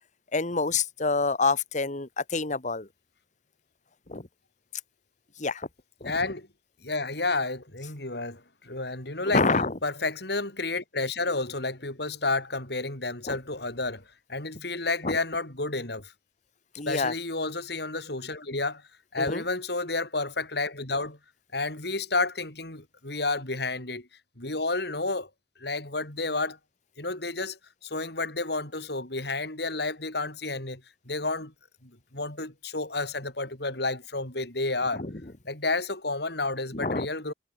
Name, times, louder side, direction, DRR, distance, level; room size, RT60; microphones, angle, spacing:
voice 1, 0.3-2.9 4.1-4.3 5.4-5.7 6.0-6.1 9.3-9.7 13.3-13.4 15.0-15.2 16.7-17.1 19.2-19.4 34.9-35.1 36.7-37.1, left 3 dB, 45° left, 1.7 m, -27 dB
voice 2, 6.0-6.5 6.8-9.4 9.8-14.0 14.3-16.1 16.9-18.8 19.1-21.2 21.5-24.1 24.4-25.3 25.6-26.6 27.0-31.5 31.8-35.0 35.5-37.3, left 3 dB, 65° left, 5.6 m, -31 dB
head